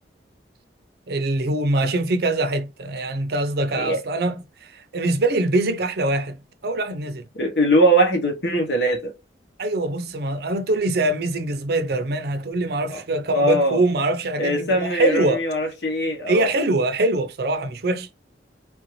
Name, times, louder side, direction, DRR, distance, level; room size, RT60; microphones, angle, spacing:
voice 1, 1.1-7.2 9.6-15.4 16.3-18.3, right 2 dB, 60° right, 0.5 m, -23 dB
voice 2, 7.3-9.1 12.9-13.0 13.3-13.8 14.4-16.5, right 1 dB, 75° left, 1.1 m, -21 dB
3.4 x 2.6 x 3.1 m
head